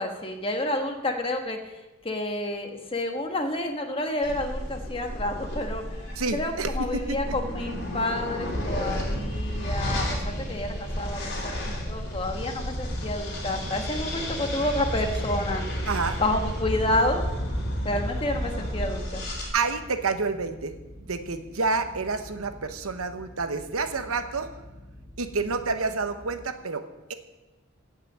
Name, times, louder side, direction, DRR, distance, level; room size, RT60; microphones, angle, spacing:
voice 1, 0.0-1.7 2.0-5.8 6.3-10.2 10.5-15.6 16.2-17.2 17.8-19.2, left 1 dB, 25° left, 4 dB, 1.3 m, -29 dB
sound 1, 4.2-19.5, equal, 45° left, 3.4 m, -31 dB
voice 2, 6.2-7.3 15.9-16.2 19.5-24.5 25.2-27.1, right 4 dB, 80° right, 9 dB, 1.0 m, -29 dB
sound 2, 7.0-26.5, left 1 dB, 85° left, 2.7 m, -47 dB
16.5 x 5.8 x 7.2 m, 1.1 s
head